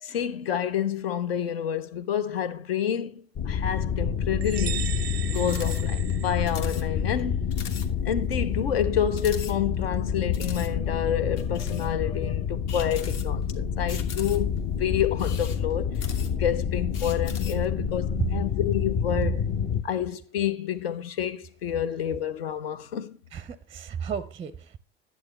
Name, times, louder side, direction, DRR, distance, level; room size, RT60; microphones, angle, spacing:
voice 1, 0.0-4.9 5.3-7.5 8.0-14.5 14.8-15.9 16.4-19.4 19.8-23.2, left 9 dB, 70° left, 0.8 m, -29 dB
sound 1, 3.4-19.8, left 7 dB, 35° left, 0.7 m, -28 dB
sound 2, 4.4-7.0, right 11 dB, 90° right, 0.5 m, -37 dB
sound 3, 5.3-5.8 6.1-6.2 6.5-6.9 7.2-7.3 7.5-7.9 8.3-8.4 9.1-9.9 10.3-10.7 11.4-11.9 12.7-13.5 13.9-14.6 15.1-16.5 16.9-17.7, left 6 dB, 55° left, 1.3 m, -41 dB
voice 2, 23.3-24.8, right 7 dB, 20° right, 0.5 m, -32 dB
10.5 x 8.1 x 3.1 m
figure-of-eight pair, 75°, 31 cm